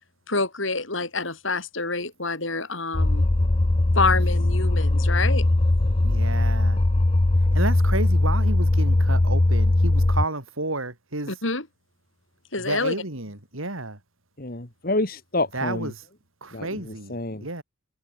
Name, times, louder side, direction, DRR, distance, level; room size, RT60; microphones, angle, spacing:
voice 1, 0.3-3.2 3.9-5.5 11.3-11.7 12.5-12.9, left 3 dB, 70° left, 6.6 m, -27 dB
sound 1, 2.9-10.3, left 2 dB, 25° left, 0.6 m, -20 dB
voice 2, 6.0-6.8 7.5-11.3 12.6-14.0 15.5-16.0 16.4-17.6, right 2 dB, 85° right, 5.3 m, -31 dB
voice 3, 14.4-15.9 16.5-16.7 17.1-17.4, left 2 dB, 45° left, 2.1 m, -27 dB
head